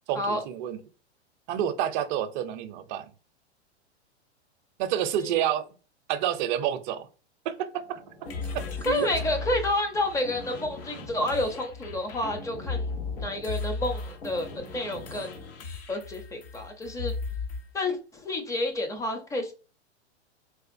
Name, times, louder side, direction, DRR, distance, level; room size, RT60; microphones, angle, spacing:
voice 1, 0.1-0.8 1.5-3.1 4.8-5.7 6.1-7.1 7.4-8.0 8.5-9.1, right 10 dB, 45° right, 0.6 m, -29 dB
sound 1, 7.8-15.6, left 1 dB, 90° left, 1.3 m, -44 dB
sound 2, 8.2-17.7, left 4 dB, 60° left, 0.8 m, -36 dB
voice 2, 8.9-12.9 13.2-15.3 15.9-17.2 17.7-19.5, left 1 dB, 10° left, 0.6 m, -29 dB
4.1 x 2.4 x 2.5 m
hypercardioid pair, 115°, 33 cm